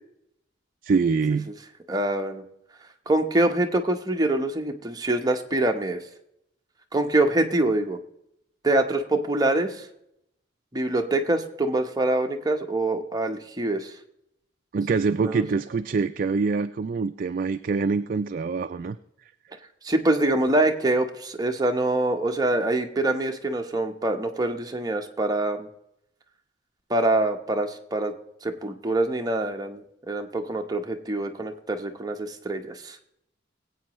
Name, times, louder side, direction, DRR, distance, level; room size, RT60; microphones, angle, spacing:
voice 1, 0.8-1.5 14.7-19.0, right 4 dB, 50° right, 9 dB, 0.4 m, -25 dB
voice 2, 1.9-2.4 3.1-6.0 6.9-8.0 8.6-9.8 10.7-13.9 15.2-15.4 19.8-25.7 26.9-28.1 28.4-33.0, right 2 dB, 20° right, 3 dB, 0.9 m, -25 dB
20.5 x 8.5 x 3.1 m, 0.80 s
head